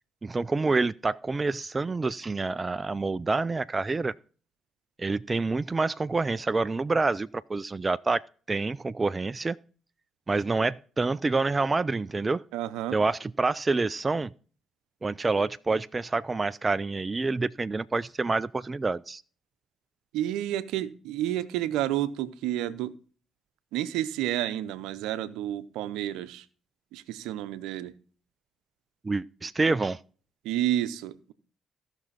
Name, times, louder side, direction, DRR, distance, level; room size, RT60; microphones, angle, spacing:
voice 1, 0.2-4.1 5.0-8.2 8.5-9.6 10.3-12.4 12.9-14.3 15.0-19.2 29.0-30.0, right 3 dB, 30° right, 0.4 m, -27 dB
voice 2, 12.5-13.0 20.1-22.9 23.7-26.5 26.9-27.9 30.4-31.3, right 12 dB, 80° right, 0.7 m, -30 dB
16.0 x 6.2 x 4.1 m
hypercardioid pair, 50°, 0 cm